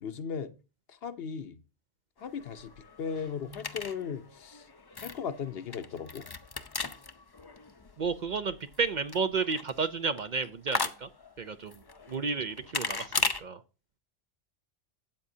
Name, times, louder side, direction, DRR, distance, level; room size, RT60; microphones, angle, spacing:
voice 1, 0.0-0.5 0.9-1.6 2.2-4.7 5.0-6.3, left 6 dB, 65° left, 0.9 m, -37 dB
sound 1, 2.2-13.4, left 4 dB, 30° left, 0.5 m, -38 dB
Guitar, 3.1-3.9, left 1 dB, 85° right, 5.2 m, -51 dB
voice 2, 8.0-11.1 11.4-11.8 12.1-13.6, right 4 dB, 50° right, 0.6 m, -32 dB
13.0 x 8.4 x 2.7 m
omnidirectional pair, 1.1 m